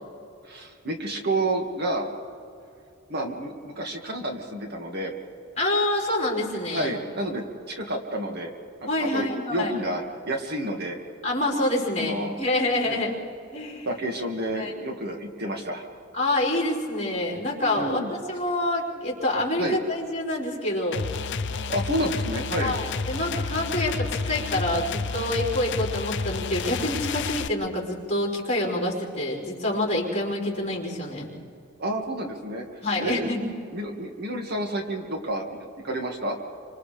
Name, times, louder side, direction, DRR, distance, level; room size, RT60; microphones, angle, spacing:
voice 1, 0.4-2.1 3.1-5.1 6.7-8.5 8.8-11.0 12.0-12.4 12.8-13.0 13.8-15.9 17.7-18.1 19.6-19.8 21.7-22.8 31.8-32.7 33.0-33.3 33.7-35.6 35.8-36.4, right 1 dB, 50° right, 2 dB, 2.0 m, -30 dB
voice 2, 5.6-6.9 8.9-9.7 11.2-13.1 13.5-13.9 14.5-14.7 16.1-18.0 18.3-21.1 22.6-31.3 32.8-33.5, left 1 dB, 35° left, -4 dB, 4.8 m, -27 dB
sound 1, 20.9-27.5, left 4 dB, 60° left, 0.6 m, -30 dB
29.5 x 25.5 x 3.4 m, 2.5 s
head